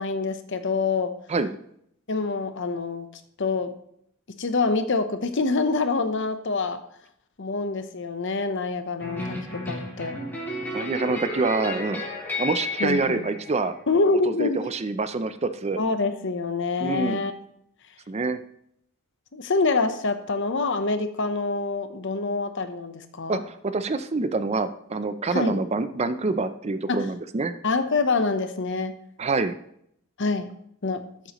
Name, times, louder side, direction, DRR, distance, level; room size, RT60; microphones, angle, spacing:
voice 1, 0.0-1.1 2.1-3.1 3.4-3.7 4.3-6.8 7.4-10.2 12.8-13.2 13.9-14.7 15.8-17.3 19.3-23.4 25.3-25.6 26.9-27.1 27.6-29.0 30.2-30.5 30.8-31.0, left 3 dB, 60° left, 9 dB, 0.9 m, -26 dB
sound 1, 9.0-14.1, left 2 dB, 10° left, 3.7 m, -33 dB
voice 2, 10.7-12.0 12.4-13.7 14.2-15.8 16.8-17.2 18.1-18.4 23.3-27.5 29.2-29.6, right 3 dB, 30° right, 11 dB, 0.5 m, -26 dB
13.5 x 7.7 x 3.1 m, 0.71 s
head